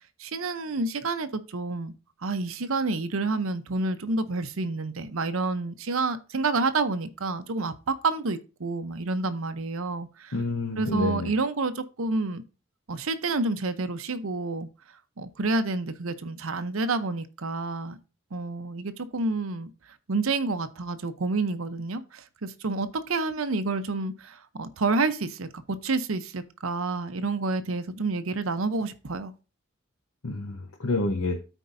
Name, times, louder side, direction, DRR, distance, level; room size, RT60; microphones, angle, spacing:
voice 1, 0.2-1.9 2.2-10.3 10.8-12.4 12.9-14.7 15.2-18.0 18.3-19.7 20.1-29.3, right 3 dB, 75° right, 0.7 m, -29 dB
voice 2, 10.3-11.3 30.2-31.4, left 2 dB, 85° left, 1.0 m, -28 dB
13.5 x 4.5 x 2.6 m
head